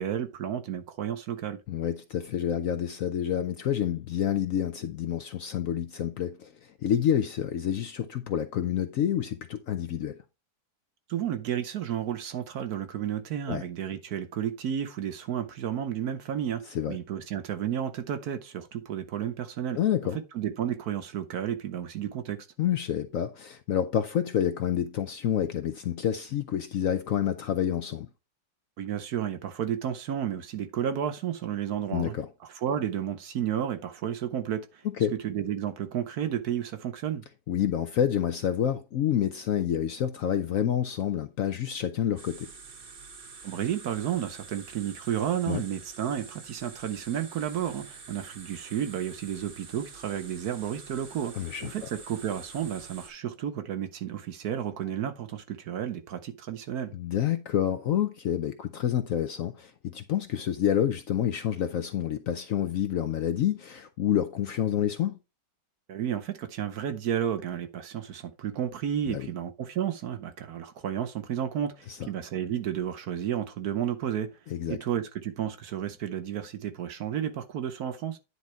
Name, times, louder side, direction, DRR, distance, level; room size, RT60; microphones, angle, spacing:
voice 1, 0.0-1.6 11.1-19.8 20.3-22.5 28.8-32.1 32.4-34.8 35.2-37.2 43.4-56.9 65.9-74.3 74.7-78.2, right 9 dB, 65° right, 1.2 m, -32 dB
voice 2, 1.7-6.5 6.8-10.2 13.5-13.6 16.7-17.0 19.8-20.2 22.6-28.1 31.9-32.3 35.0-35.1 37.5-42.5 45.5-45.6 51.3-51.7 56.9-65.2 69.1-69.3 71.9-72.0 74.5-74.8, left 10 dB, 65° left, 0.8 m, -28 dB
sound 1, 42.2-53.1, right 5 dB, 40° right, 0.9 m, -47 dB
9.7 x 3.9 x 4.5 m
omnidirectional pair, 1.9 m